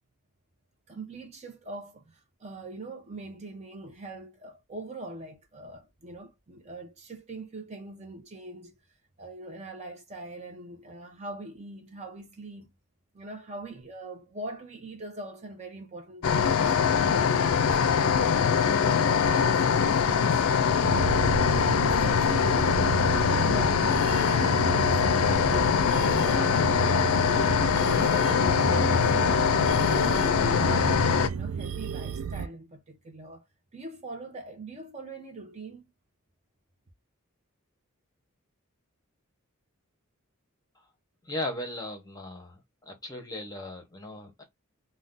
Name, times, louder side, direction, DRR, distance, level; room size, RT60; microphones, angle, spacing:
voice 1, 0.9-8.7 9.2-12.7 13.1-17.3 17.8-20.4 21.5-29.5 29.9-33.4 33.7-35.8, right 2 dB, 30° right, 0.6 m, -42 dB
sound 1, 16.2-31.3, left 7 dB, 75° left, 0.4 m, -23 dB
sound 2, 20.8-32.5, right 6 dB, 75° right, 0.3 m, -32 dB
voice 2, 41.2-42.6 42.9-44.4, left 1 dB, 15° left, 0.8 m, -37 dB
2.6 x 2.2 x 3.5 m
head